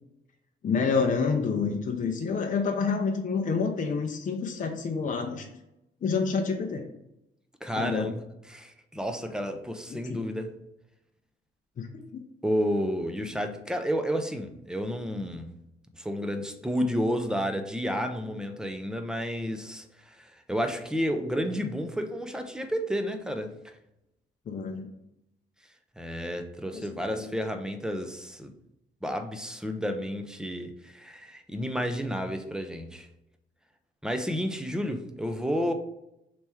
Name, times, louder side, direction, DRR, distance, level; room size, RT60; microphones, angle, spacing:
voice 1, 0.6-5.4 6.0-6.9 7.8-8.1 9.9-10.3 11.8-12.2 24.5-24.9 26.7-26.9 27.1-27.3, left 5 dB, 40° left, 2 dB, 0.6 m, -28 dB
voice 2, 7.6-8.2 8.5-10.5 12.4-15.5 15.9-23.5 26.0-28.5 29.0-33.1 34.0-35.7, equal, 5° right, 6 dB, 0.5 m, -31 dB
3.4 x 3.1 x 4.5 m, 0.86 s
cardioid pair, 90°, 20 cm